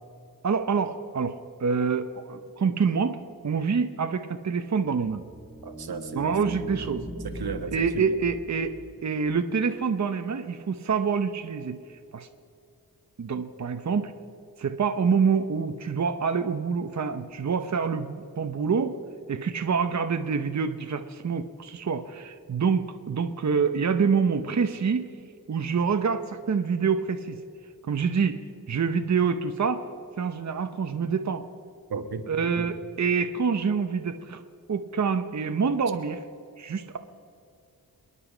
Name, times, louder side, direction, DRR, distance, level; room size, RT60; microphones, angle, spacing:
voice 1, 0.4-3.2 3.4-5.2 6.1-7.0 7.7-8.7 9.0-11.8 12.1-12.3 13.2-14.1 14.6-18.9 19.3-25.1 25.5-27.4 27.8-28.4 28.7-29.9 30.2-31.5 32.3-34.4 34.7-36.2 36.6-37.0, right 5 dB, 50° right, 7 dB, 0.8 m, -26 dB
sound 1, 5.0-9.4, equal, ahead, 2.7 m, -40 dB
voice 2, 5.6-6.3 7.2-8.2 31.9-32.7, right 4 dB, 85° right, 7 dB, 1.4 m, -34 dB
27.0 x 10.0 x 5.0 m, 2.6 s
wide cardioid pair, 105°, 36 cm